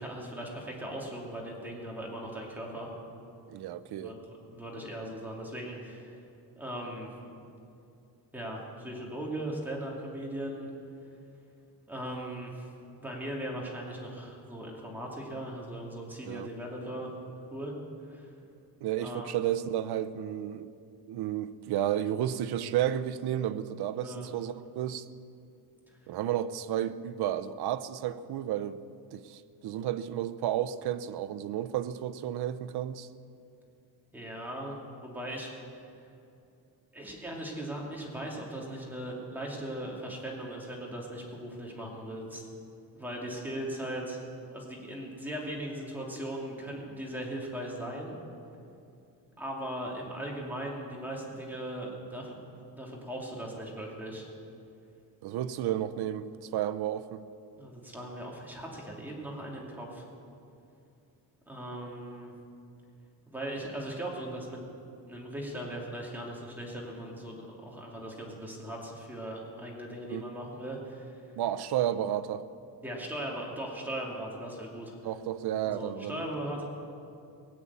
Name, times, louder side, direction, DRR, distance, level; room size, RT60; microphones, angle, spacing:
voice 1, 0.0-2.9 4.0-4.2 4.5-6.2 6.6-7.1 8.3-10.7 11.9-12.7 13.0-17.1 17.5-17.7 18.1-18.3 19.0-19.3 23.9-24.3 34.1-35.5 35.8-35.9 36.9-42.4 43.0-44.2 44.5-48.1 49.4-52.4 52.8-54.3 55.7-55.8 57.6-60.0 61.5-62.3 63.3-64.7 65.1-67.4 67.6-71.3 72.8-74.9 75.6-76.6, right 1 dB, 5° right, 2.6 m, -38 dB
voice 2, 3.5-4.1 16.2-16.5 18.8-20.7 21.1-25.1 26.1-28.8 29.1-33.1 55.2-56.3 56.5-57.2 70.1-70.2 71.4-72.4 75.0-76.2, right 11 dB, 65° right, 0.7 m, -32 dB
18.5 x 8.7 x 8.3 m
cardioid pair, 150°, 41 cm